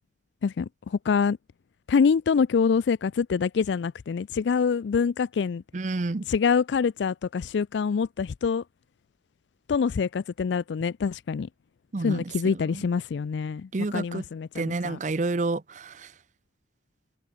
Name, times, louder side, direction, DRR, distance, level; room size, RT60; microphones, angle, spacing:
voice 1, 0.4-1.4 1.9-5.6 6.3-8.6 9.7-11.5 12.0-15.0, left 6 dB, 75° left, 0.4 m, -25 dB
voice 2, 5.7-6.3 11.9-12.2 13.7-14.2 14.5-16.1, right 3 dB, 40° right, 0.6 m, -29 dB
head